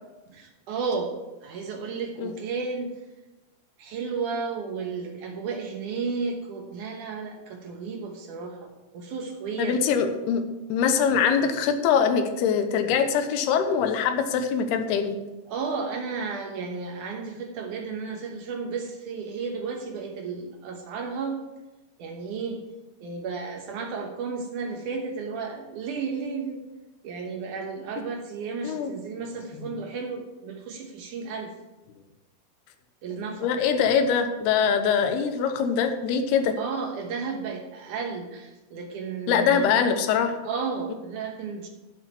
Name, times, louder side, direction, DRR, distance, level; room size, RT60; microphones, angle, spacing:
voice 1, 0.3-1.2 1.4-3.0 3.8-9.8 15.5-21.4 22.0-22.6 23.0-26.6 27.0-31.5 33.0-33.5 36.6-39.7 40.4-41.7, right 5 dB, 65° right, 3 dB, 2.3 m, -33 dB
voice 2, 9.6-10.4 10.7-15.2 28.6-28.9 29.6-29.7 33.4-36.5 39.3-40.4, left 7 dB, 90° left, 7 dB, 3.0 m, -23 dB
12.0 x 8.7 x 4.5 m, 1.1 s
omnidirectional pair, 4.5 m